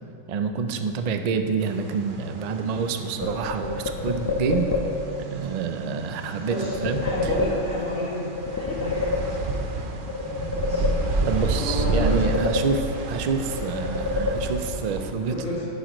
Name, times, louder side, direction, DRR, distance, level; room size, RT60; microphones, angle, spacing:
voice 1, 0.3-4.7 5.3-7.0 11.3-12.8 13.1-15.4, right 5 dB, 70° right, 7 dB, 0.3 m, -27 dB
sound 1, 1.6-15.1, right 2 dB, 50° right, 0.7 m, -31 dB
sound 2, 3.2-5.2 6.6-8.0 8.4-9.7 10.1-11.4 11.8-13.2 13.5-14.9, left 3 dB, 35° left, 0.3 m, -28 dB
voice 2, 6.5-8.2 8.5-9.4 10.6-12.4 15.3-15.7, equal, 70° left, -5 dB, 2.3 m, -31 dB
10.5 x 9.2 x 3.1 m, 2.5 s
omnidirectional pair, 1.4 m